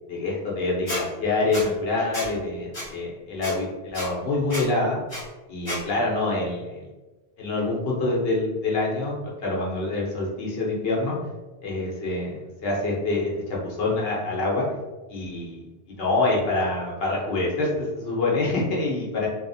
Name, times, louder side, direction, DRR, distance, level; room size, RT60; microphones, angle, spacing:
voice 1, 0.1-5.0 5.5-6.7 7.4-11.2 11.6-14.7 15.1-15.6 15.9-19.3, left 2 dB, 65° left, -3 dB, 0.9 m, -26 dB
Squeak, 0.9-1.0 1.5-1.6 2.1-2.3 2.7-2.8 3.4-3.5 3.9-4.1 4.5-4.6 5.1-5.2 5.6-5.8, left 1 dB, 35° left, 0.9 m, -30 dB
2.8 x 2.0 x 2.6 m, 1.1 s
omnidirectional pair, 1.1 m